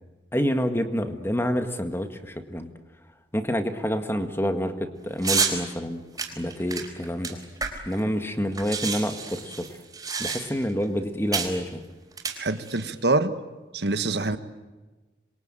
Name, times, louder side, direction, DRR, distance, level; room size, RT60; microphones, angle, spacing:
voice 1, 0.3-2.7 3.3-6.0 6.4-7.4 7.8-9.6 10.2-11.8 14.3-14.4, equal, 15° left, 7 dB, 1.8 m, -28 dB
sound 1, 5.2-5.6 6.2-8.0 8.3-8.4 8.5-10.7 11.3-11.6 12.1-12.9, right 5 dB, 20° right, 4.3 m, -29 dB
voice 2, 12.4-13.4 13.7-14.4, right 2 dB, 65° right, 11 dB, 1.4 m, -25 dB
27.0 x 22.5 x 9.0 m, 1.2 s
head